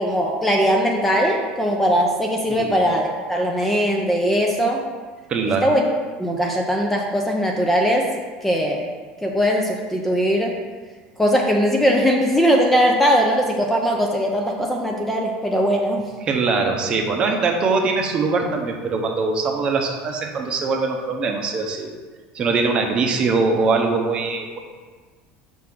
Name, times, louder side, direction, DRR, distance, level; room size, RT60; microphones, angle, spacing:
voice 1, 0.0-4.8 5.6-5.8 6.2-8.1 8.4-8.8 9.2-10.5 11.2-16.1, equal, 5° left, 0 dB, 0.5 m, -20 dB
voice 2, 5.3-5.7 16.3-21.9 22.3-24.6, right 4 dB, 30° right, 3 dB, 0.7 m, -22 dB
6.0 x 3.7 x 6.0 m, 1.5 s
cardioid pair, 160°, 3 cm